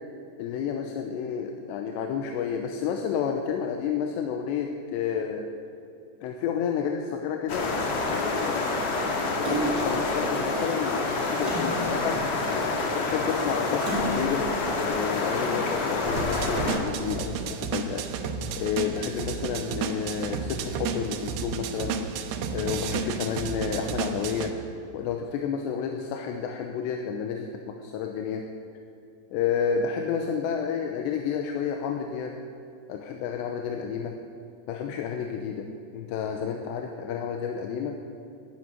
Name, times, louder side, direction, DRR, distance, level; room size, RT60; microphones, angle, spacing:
voice 1, 0.4-5.5 6.2-7.7 8.1-8.9 9.3-12.6 13.0-14.5 14.8-18.1 18.6-22.0 22.5-24.6 24.8-28.5 29.3-32.4 32.9-34.2 34.7-38.0, left 7 dB, 90° left, 4 dB, 3.0 m, -30 dB
sound 1, 7.5-16.8, left 3 dB, 50° left, 2.3 m, -27 dB
Splash splatter, 9.4-10.0 11.4-12.6 13.8-14.6 15.2-15.3, right 1 dB, 25° right, 3.2 m, -32 dB
sound 2, 16.2-24.5, right 6 dB, 80° right, 2.7 m, -32 dB
11.5 x 11.0 x 9.3 m, 2.4 s
omnidirectional pair, 4.9 m